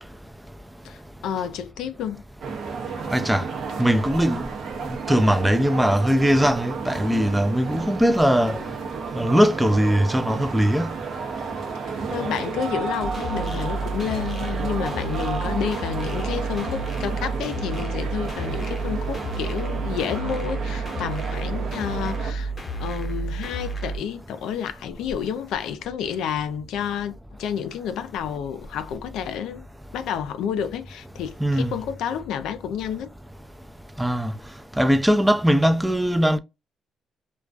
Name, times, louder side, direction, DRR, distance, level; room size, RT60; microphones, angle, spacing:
voice 1, 0.8-2.2 11.8-22.5 22.8-29.6 29.9-33.1, left 8 dB, 85° left, 0.3 m, -30 dB
sound 1, 2.4-22.3, right 5 dB, 65° right, 0.6 m, -32 dB
voice 2, 3.1-3.5 3.8-4.4 4.9-8.6 9.2-10.9 31.4-31.7 34.0-34.3 34.8-36.4, equal, 5° right, 0.3 m, -20 dB
sound 2, 13.0-24.0, right 3 dB, 30° left, 0.7 m, -30 dB
2.3 x 2.2 x 2.4 m
cardioid pair, 90°, 0 cm